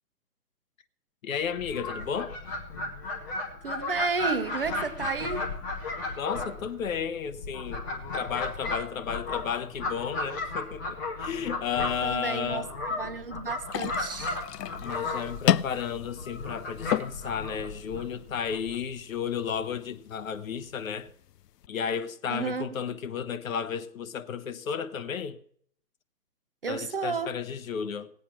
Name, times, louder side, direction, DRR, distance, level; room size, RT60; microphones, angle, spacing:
voice 1, 1.2-2.4 6.2-7.8 8.1-12.7 14.8-21.1 21.7-25.4 26.7-28.1, left 7 dB, 55° left, 1.0 m, -33 dB
Fowl, 1.5-18.8, left 2 dB, 10° left, 0.8 m, -35 dB
voice 2, 3.6-5.5 12.0-14.4 22.3-22.7 26.6-27.3, right 4 dB, 35° right, 0.6 m, -32 dB
sound 1, 13.7-21.7, left 11 dB, 70° left, 0.6 m, -34 dB
18.0 x 8.5 x 5.9 m
hypercardioid pair, 160°, 50 cm